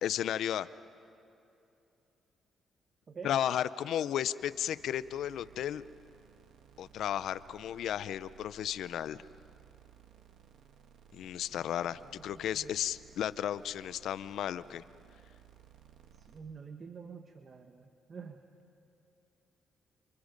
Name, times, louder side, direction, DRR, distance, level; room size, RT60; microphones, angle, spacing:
voice 1, 0.0-0.7 3.2-5.8 6.8-9.2 11.1-14.8, left 10 dB, 80° left, 16 dB, 0.6 m, -34 dB
voice 2, 3.1-3.4 11.5-11.6 12.0-12.7 16.1-18.4, right 5 dB, 45° right, 6 dB, 1.3 m, -48 dB
sound 1, 4.4-16.4, right 8 dB, 80° right, 1.7 m, -59 dB
30.0 x 28.0 x 5.3 m, 2.8 s
cardioid pair, 90°, 0 cm